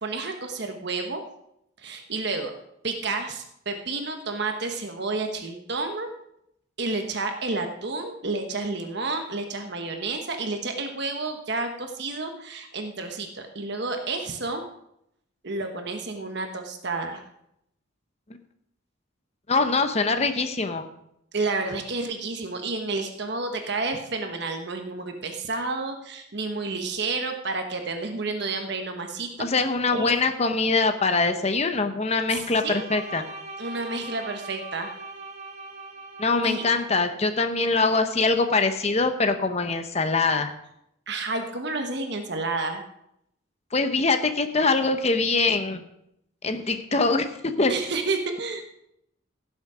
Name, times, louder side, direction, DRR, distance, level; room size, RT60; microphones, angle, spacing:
voice 1, 0.0-1.2 1.8-2.5 2.8-6.1 6.8-14.6 15.4-17.2 21.3-29.5 29.9-30.1 32.3-32.8 33.6-34.9 36.4-36.6 41.1-42.8 47.7-48.6, right 3 dB, 55° right, 5 dB, 1.2 m, -30 dB
voice 2, 19.5-20.8 29.4-33.2 36.2-40.5 43.7-45.8 46.4-47.7, left 3 dB, 30° left, 8 dB, 0.9 m, -23 dB
Bowed string instrument, 32.4-37.0, right 3 dB, 35° right, 1.6 m, -41 dB
16.5 x 7.3 x 4.9 m, 0.77 s
head